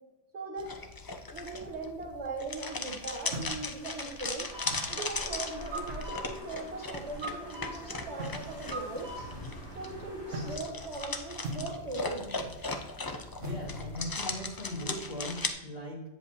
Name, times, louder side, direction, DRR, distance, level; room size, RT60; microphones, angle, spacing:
voice 1, 0.3-0.7 1.3-4.5 4.9-9.1 9.7-12.3, right 3 dB, 65° right, 0 dB, 1.6 m, -39 dB
sound 1, 0.6-15.5, left 3 dB, 35° left, 0.3 m, -38 dB
sound 2, 2.9-14.3, right 1 dB, 80° right, 1.4 m, -45 dB
sound 3, 4.5-10.6, equal, 20° left, 2.3 m, -43 dB
voice 2, 13.4-16.1, left 1 dB, 50° left, -3 dB, 2.2 m, -39 dB
8.4 x 7.8 x 2.7 m, 1.1 s
omnidirectional pair, 1.3 m